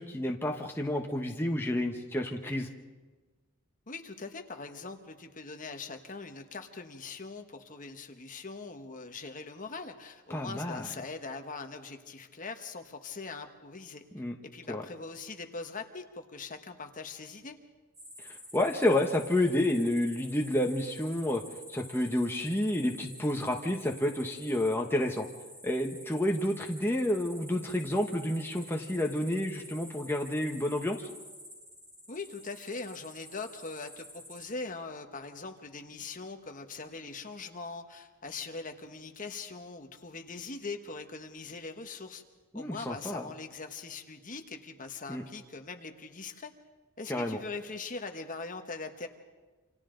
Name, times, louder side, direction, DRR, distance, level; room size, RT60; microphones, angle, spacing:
voice 1, 0.0-2.7 10.3-10.9 14.1-14.3 14.7-14.8 18.2-21.4 21.7-25.3 25.6-31.1 42.5-43.3 45.1-45.2 47.1-47.4, left 1 dB, 10° left, 1 dB, 1.1 m, -30 dB
voice 2, 3.9-14.0 14.4-17.6 32.1-42.2 42.5-46.5 47.0-49.1, left 4 dB, 35° left, 5 dB, 1.3 m, -41 dB
sound 1, 17.9-34.5, equal, 15° right, 3.8 m, -49 dB
28.0 x 26.0 x 3.9 m, 1.4 s
head